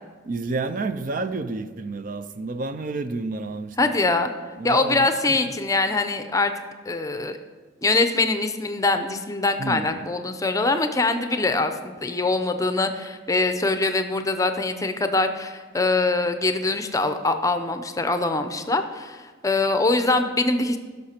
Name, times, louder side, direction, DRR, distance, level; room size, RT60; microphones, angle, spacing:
voice 1, 0.2-4.0 4.6-5.5 9.6-10.1, right 3 dB, 45° right, 0.4 m, -30 dB
voice 2, 3.8-4.3 4.6-6.5 6.9-7.4 7.8-20.8, left 3 dB, 15° left, 0.6 m, -23 dB
16.0 x 6.5 x 4.4 m
head